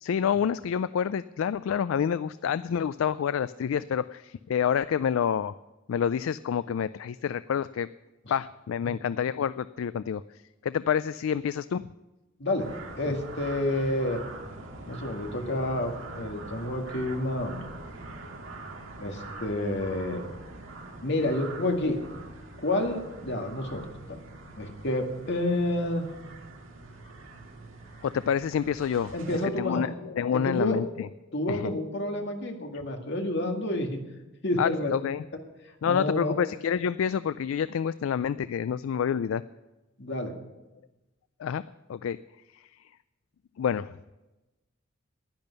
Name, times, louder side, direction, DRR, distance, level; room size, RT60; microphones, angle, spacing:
voice 1, 0.0-5.5 5.9-7.9 8.3-11.9 13.1-13.2 28.0-31.1 31.5-31.7 34.6-35.2 35.8-39.4 41.4-41.6 41.9-42.2 42.5-42.7 43.6-43.9, left 7 dB, 75° left, 15 dB, 0.3 m, -28 dB
voice 2, 12.4-12.7 13.0-14.2 14.9-17.7 19.0-20.2 21.0-22.0 22.6-24.2 24.6-26.0 29.1-29.8 30.3-30.8 31.3-34.0 34.4-34.9 35.8-36.4 40.0-40.3, left 1 dB, 60° left, 3 dB, 1.9 m, -29 dB
sound 1, 12.6-29.5, right 2 dB, 75° right, 2.1 m, -44 dB
11.0 x 10.5 x 6.8 m, 1.0 s
head